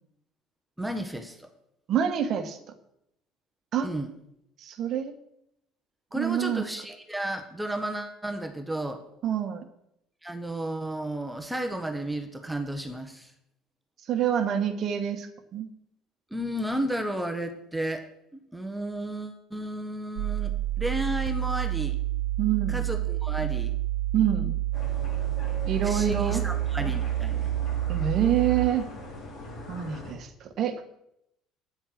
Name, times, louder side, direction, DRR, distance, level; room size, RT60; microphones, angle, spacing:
voice 1, 0.8-1.5 3.8-4.1 6.1-9.0 10.2-13.3 16.3-18.0 18.3-22.0 22.7-23.7 25.8-27.5, right 1 dB, 5° right, 6 dB, 1.4 m, -33 dB
voice 2, 1.9-2.6 3.7-3.9 4.6-5.2 6.1-6.7 9.2-9.7 14.1-15.7 22.4-22.8 24.1-24.6 25.7-26.5 27.9-28.9 29.7-30.8, right 9 dB, 45° right, 8 dB, 1.3 m, -27 dB
sound 1, 20.2-28.7, right 14 dB, 65° right, 0.3 m, -28 dB
sound 2, 24.7-30.1, left 2 dB, 50° left, 5.2 m, -41 dB
9.7 x 8.0 x 6.1 m, 0.78 s
figure-of-eight pair, 60°, 0 cm